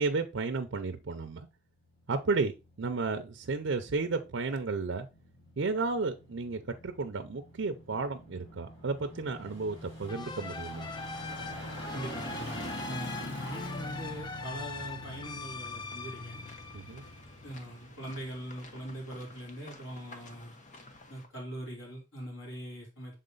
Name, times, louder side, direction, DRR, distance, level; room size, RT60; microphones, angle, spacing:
voice 1, 0.0-1.5 2.1-5.1 5.6-10.9 16.7-17.0, right 4 dB, 75° right, 7 dB, 0.6 m, -33 dB
sound 1, 2.0-18.5 18.9-19.0, left 1 dB, 70° left, 2.1 m, -45 dB
sound 2, 10.1-17.5, left 4 dB, 20° left, 0.3 m, -42 dB
voice 2, 11.9-12.6 12.9-16.4 17.4-20.6 21.1-23.2, right 1 dB, 85° left, -2 dB, 3.3 m, -41 dB
sound 3, 15.6-21.3, left 2 dB, 40° left, 1.0 m, -53 dB
6.5 x 3.8 x 3.9 m, 0.28 s
head